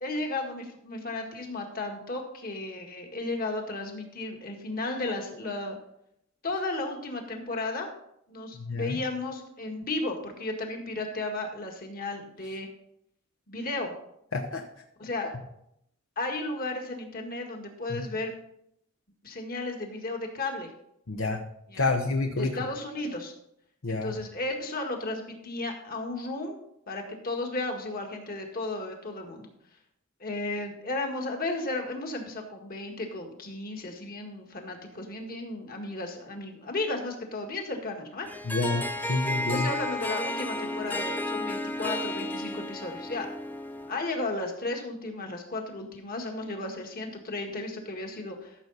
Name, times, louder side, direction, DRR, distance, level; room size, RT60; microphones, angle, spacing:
voice 1, 0.0-5.8 6.4-7.9 8.3-12.7 13.5-13.9 15.0-15.3 16.2-18.3 19.2-20.7 21.7-21.9 22.4-23.3 23.9-26.6 26.9-29.5 30.2-38.3 39.5-43.3 43.9-48.7, left 2 dB, 45° left, 3 dB, 1.9 m, -34 dB
voice 2, 8.5-9.0 14.3-14.6 17.9-18.0 21.1-21.4 21.8-22.6 23.8-24.2 38.4-39.7, left 3 dB, 75° left, 2 dB, 1.0 m, -28 dB
Harp, 38.3-44.0, left 1 dB, 10° left, 0.6 m, -33 dB
13.5 x 6.8 x 4.1 m, 0.75 s
head